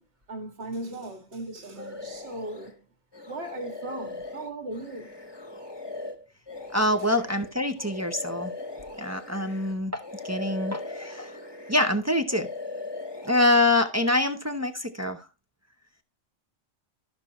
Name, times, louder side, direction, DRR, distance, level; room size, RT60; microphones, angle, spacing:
voice 1, 0.3-2.7 3.3-5.1, right 2 dB, 55° right, 2.1 m, -37 dB
sound 1, 1.8-2.7 3.1-9.8 10.0-12.0 12.3-13.7, left 3 dB, 20° left, 1.1 m, -39 dB
voice 2, 6.7-8.5 9.0-11.3 11.7-12.5 13.2-15.2, left 2 dB, 20° right, 0.5 m, -25 dB
13.5 x 6.0 x 3.0 m
omnidirectional pair, 1.3 m